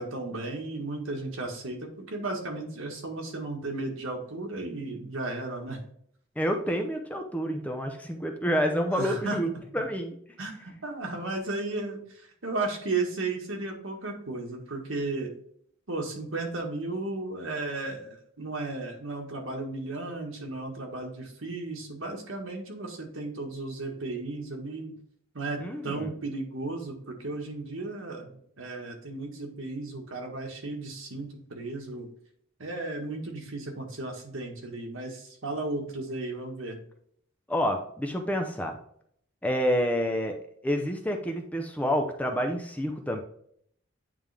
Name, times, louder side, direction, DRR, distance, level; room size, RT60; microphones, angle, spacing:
voice 1, 0.0-5.8 8.9-9.4 10.4-15.3 15.9-24.9 25.3-32.1 32.6-36.8, right 2 dB, 70° right, 1 dB, 1.7 m, -34 dB
voice 2, 6.4-10.2 25.6-26.1 37.5-38.8 39.4-40.4 40.6-43.2, equal, 5° left, 3 dB, 0.6 m, -28 dB
9.3 x 3.6 x 3.4 m, 0.66 s
head